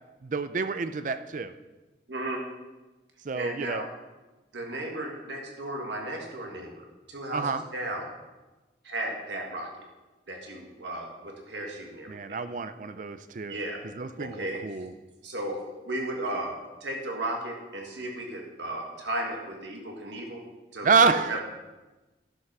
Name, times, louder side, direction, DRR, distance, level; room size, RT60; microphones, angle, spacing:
voice 1, 0.2-1.5 3.2-3.8 7.3-7.6 12.1-13.6 13.8-14.9 20.8-21.4, right 4 dB, 45° right, 11 dB, 0.4 m, -27 dB
voice 2, 2.1-2.4 3.3-3.9 4.5-8.1 8.8-9.7 10.3-12.4 13.5-13.8 14.2-14.6 15.2-15.6 15.8-16.6 16.8-20.4 20.7-21.0 21.3-21.4, right 1 dB, 75° right, 1 dB, 1.7 m, -35 dB
11.5 x 5.5 x 6.1 m, 1.1 s
head